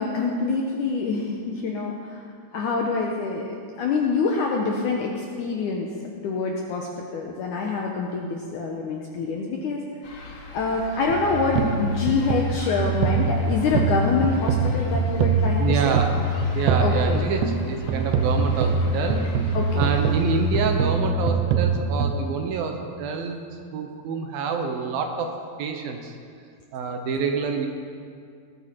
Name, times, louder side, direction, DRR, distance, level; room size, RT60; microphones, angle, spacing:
voice 1, 0.0-2.2 2.5-5.9 6.2-9.8 10.5-16.0 16.8-17.2 19.5-20.0, left 4 dB, 75° left, 0 dB, 1.9 m, -26 dB
sound 1, 10.0-20.9, left 2 dB, 55° left, 2.2 m, -41 dB
sound 2, 11.1-22.1, right 3 dB, 90° right, 3.0 m, -23 dB
voice 2, 15.6-16.2 16.5-19.2 19.8-23.4 23.7-25.3 25.6-26.1 26.7-27.7, right 5 dB, 70° right, 4 dB, 2.6 m, -27 dB
18.0 x 11.5 x 4.4 m, 2.3 s
omnidirectional pair, 4.7 m